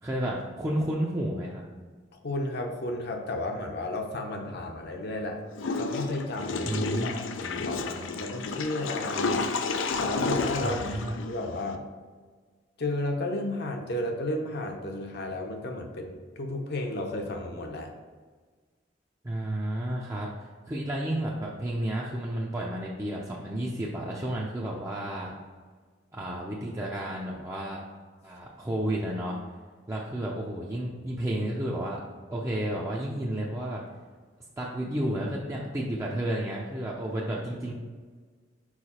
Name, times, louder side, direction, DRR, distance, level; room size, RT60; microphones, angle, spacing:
voice 1, 0.0-1.6 6.7-7.2 10.6-11.1 19.2-25.3 26.1-27.8 28.2-29.4 29.9-32.0 32.3-33.8 34.6-37.7, right 1 dB, 15° right, -4 dB, 0.6 m, -31 dB
voice 2, 2.1-5.4 5.8-6.7 7.0-9.5 10.0-10.8 11.2-11.8 12.8-17.9, left 2 dB, 60° left, 3 dB, 0.8 m, -33 dB
Water / Toilet flush, 5.6-11.8, left 4 dB, 90° left, 0.5 m, -31 dB
4.8 x 4.6 x 4.2 m, 1.5 s
head